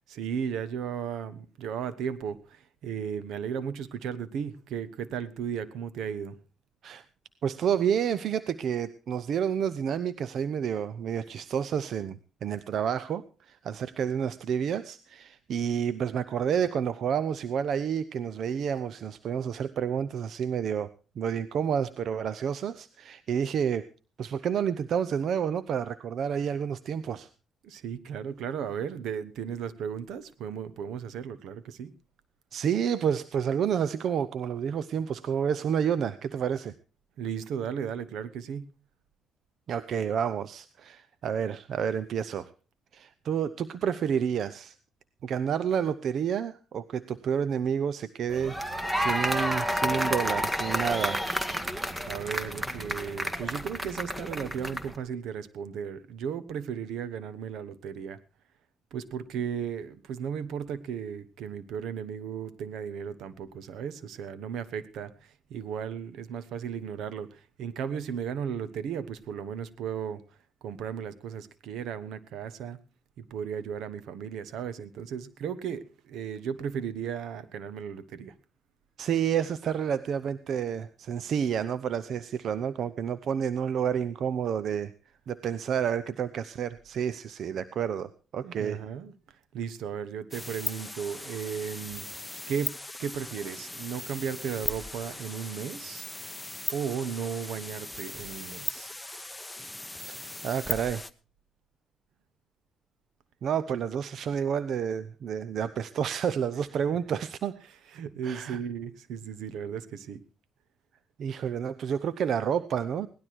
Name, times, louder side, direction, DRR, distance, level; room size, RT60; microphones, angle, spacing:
voice 1, 0.1-6.3 27.6-31.9 37.2-38.7 52.0-58.2 58.9-70.2 70.6-72.8 73.2-78.3 88.4-89.1 89.5-92.1 92.5-96.1 96.7-98.9 107.9-110.2, right 7 dB, 80° right, 16 dB, 1.2 m, -35 dB
voice 2, 7.4-23.8 24.2-27.3 32.5-36.7 39.7-42.5 42.9-44.7 45.2-51.2 79.0-84.9 85.3-88.8 100.1-101.1 103.4-107.6 108.2-108.6 111.2-113.1, right 8 dB, 65° right, 15 dB, 0.7 m, -29 dB
sound 1, 48.3-55.0, equal, 15° right, 1.9 m, -30 dB
sound 2, 90.3-101.1, left 2 dB, 10° left, 0.9 m, -38 dB
18.0 x 12.0 x 4.6 m, 0.35 s
cardioid pair, 90°, 0 cm